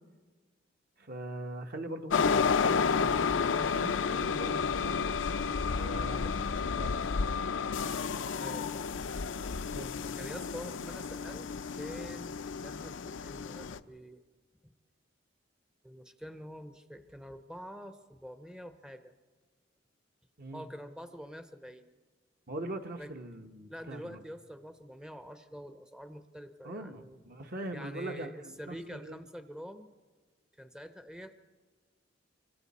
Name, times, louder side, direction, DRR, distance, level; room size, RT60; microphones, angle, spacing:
voice 1, 1.0-5.0 5.7-7.1 9.7-10.0 20.4-20.7 22.5-24.2 26.6-29.2, right 1 dB, 55° right, 5 dB, 1.1 m, -42 dB
sound 1, 2.1-13.8, left 5 dB, 80° left, 0.5 m, -31 dB
voice 2, 8.4-9.0 10.2-14.2 15.8-19.1 20.5-21.9 23.0-23.1 23.7-27.2 27.7-29.9 30.6-31.3, equal, 5° right, 8 dB, 0.6 m, -46 dB
26.0 x 24.5 x 4.2 m, 1.4 s
head